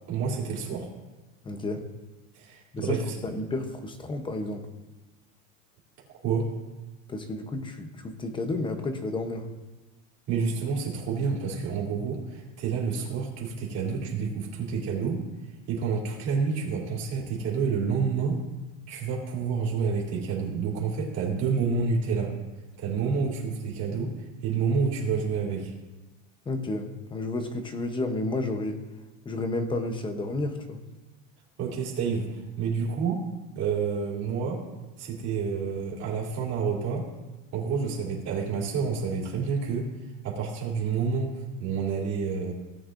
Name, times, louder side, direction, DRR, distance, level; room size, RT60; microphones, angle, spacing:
voice 1, 0.1-0.9 2.3-3.0 6.2-6.5 10.3-15.2 15.7-18.4 18.9-22.3 22.8-25.7 31.6-33.2 33.5-34.6 35.0-37.1 37.5-39.9 40.2-42.5, right 5 dB, 45° right, -3 dB, 3.0 m, -29 dB
voice 2, 1.4-1.9 2.7-4.7 7.1-9.5 26.5-28.8 29.2-30.8, left 2 dB, 15° left, 7 dB, 0.8 m, -31 dB
18.0 x 9.2 x 2.6 m, 1.1 s
cardioid pair, 165°, 37 cm